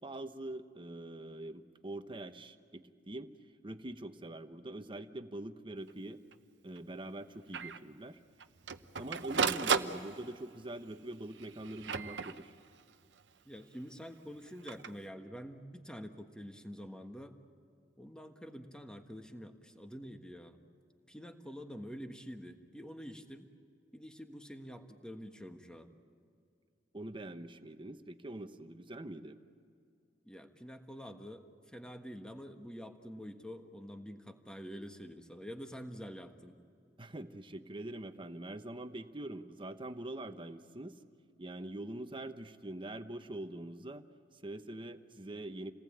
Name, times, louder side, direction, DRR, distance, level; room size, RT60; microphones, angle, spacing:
voice 1, 0.0-3.3 3.6-6.2 6.6-8.2 8.9-12.5 26.9-29.4 37.0-41.0 41.4-44.0 44.3-45.7, right 1 dB, 30° right, 9 dB, 1.0 m, -44 dB
Printer, 5.9-6.0 6.3-6.4 6.8-6.9 7.5-7.8 8.4-10.5 11.3-12.8 14.5-14.9, right 6 dB, 70° right, 0.8 m, -35 dB
voice 2, 13.4-17.4 18.0-20.6 21.1-23.5 23.9-25.9 30.2-31.4 31.7-36.6, equal, 5° left, 5 dB, 1.4 m, -47 dB
28.5 x 19.0 x 8.7 m, 2.3 s
head